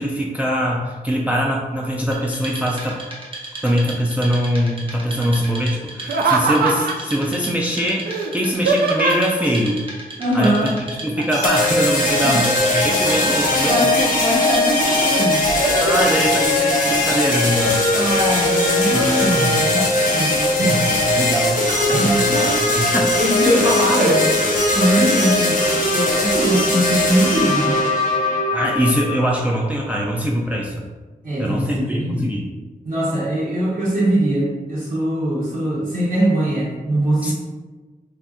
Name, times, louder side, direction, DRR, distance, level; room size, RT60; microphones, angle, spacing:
voice 1, 0.0-3.0 3.6-8.0 8.3-9.8 10.3-10.7 11.0-13.8 15.8-17.8 18.9-19.6 20.6-21.6 21.9-22.3 22.6-23.2 23.6-23.7 28.5-30.9 31.4-32.5 37.2-37.3, equal, 10° right, -2 dB, 0.3 m, -22 dB
Wood, 2.1-16.7, right 2 dB, 35° right, 0.7 m, -35 dB
Laughter, 6.0-7.1 8.1-9.4 11.2-11.6 11.9-13.5 14.1-14.8 15.2-16.4 16.8-17.4 17.9-18.7 19.2-20.0 21.2-22.0 22.5-22.6 23.1-23.4 24.0-24.2, right 3 dB, 90° right, 0.4 m, -24 dB
voice 2, 10.2-10.7 12.2-12.4 13.6-15.5 17.9-19.9 20.1-21.0 21.9-22.6 22.9-24.3 24.7-25.6 25.9-27.8 31.2-32.4 32.8-37.3, right 1 dB, 60° right, -12 dB, 1.1 m, -21 dB
sound 1, 11.3-29.3, left 2 dB, 60° left, 0.7 m, -19 dB
2.7 x 2.4 x 3.4 m, 1.3 s
wide cardioid pair, 125°, 15 cm